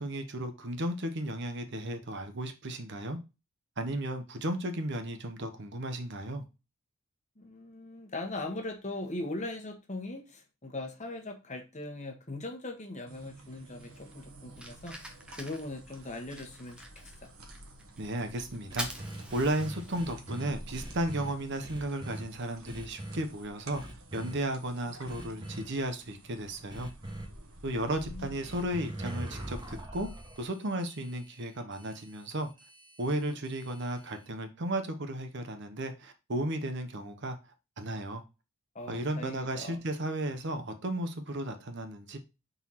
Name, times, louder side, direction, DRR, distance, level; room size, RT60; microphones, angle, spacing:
voice 1, 0.0-3.2 3.8-6.4 18.0-18.9 19.3-23.8 24.1-26.9 27.6-30.1 30.4-32.5 33.0-37.4 37.8-38.2 38.9-42.2, right 1 dB, 55° right, 0.9 m, -34 dB
voice 2, 7.4-15.0 15.4-17.3 27.6-28.5 33.3-33.4 38.7-39.8, left 2 dB, 35° left, 1.2 m, -40 dB
sound 1, 13.1-29.8, right 1 dB, 80° right, 1.2 m, -52 dB
Fire, 13.8-23.5, equal, 5° right, 0.8 m, -47 dB
sound 2, 18.7-21.3 21.6-22.2 22.6-23.2 23.7-24.3 25.0-25.6 26.7-27.2 28.4-34.2, right 1 dB, 20° right, 1.1 m, -43 dB
4.6 x 4.0 x 5.6 m
head